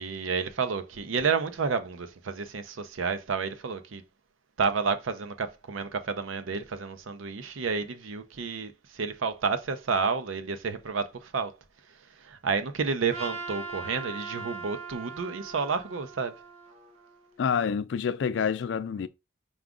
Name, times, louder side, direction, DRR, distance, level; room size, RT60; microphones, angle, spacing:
voice 1, 0.0-4.0 4.6-11.5 12.2-16.3, right 5 dB, 80° right, 0.6 m, -30 dB
Trumpet, 13.1-17.4, right 4 dB, 30° right, 0.8 m, -40 dB
voice 2, 17.4-19.1, left 6 dB, 65° left, 0.3 m, -27 dB
4.9 x 2.4 x 3.6 m
head